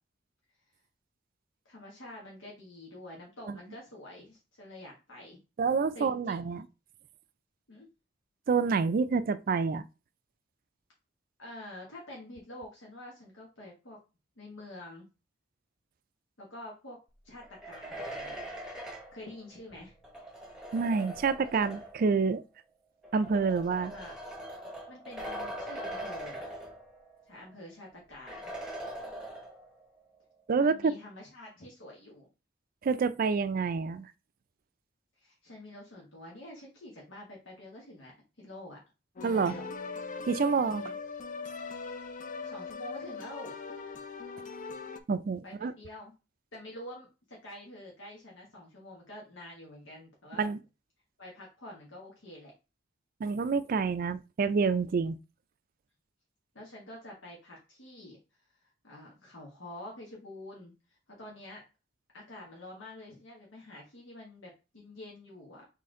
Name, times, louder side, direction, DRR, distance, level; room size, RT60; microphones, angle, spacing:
voice 1, 1.6-5.4 5.9-6.4 7.7-7.9 11.4-14.0 14.4-15.1 16.4-17.0 17.2-18.4 19.1-19.9 23.9-24.1 24.9-26.4 27.3-28.5 30.6-32.3 35.2-38.1 38.4-38.8 39.2-39.6 40.6-41.0 42.4-43.5 45.4-46.1 46.5-50.5 51.2-52.5 56.5-61.6 62.1-65.7, left 1 dB, 90° left, 1.3 m, -47 dB
voice 2, 5.6-6.6 8.5-9.8 20.7-22.4 23.1-23.9 30.5-30.9 32.8-34.1 39.2-39.6 40.3-40.9 45.1-45.7 50.4-50.6 53.2-55.2, right 5 dB, 50° right, 0.3 m, -28 dB
sound 1, 17.4-22.1 23.0-27.2 27.5-27.6 28.3-29.8, right 1 dB, 5° right, 0.9 m, -42 dB
sound 2, 39.2-45.0, left 4 dB, 45° left, 0.5 m, -40 dB
4.2 x 3.2 x 3.7 m
head